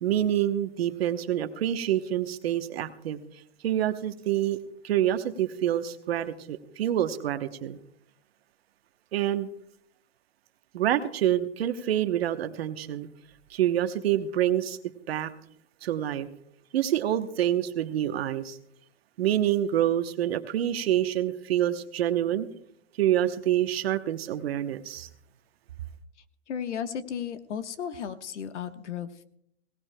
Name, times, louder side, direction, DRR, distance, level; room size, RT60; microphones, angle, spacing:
voice 1, 0.0-3.2 3.6-4.6 4.8-7.8 9.1-9.5 10.7-13.1 13.5-14.8 15.1-15.3 15.8-16.3 16.7-18.6 19.2-22.5 23.0-25.1, right 11 dB, 60° right, 9 dB, 1.0 m, -27 dB
voice 2, 26.5-29.2, left 8 dB, 85° left, 10 dB, 1.2 m, -34 dB
22.5 x 17.5 x 2.2 m, 0.70 s
supercardioid pair, 175°, 34 cm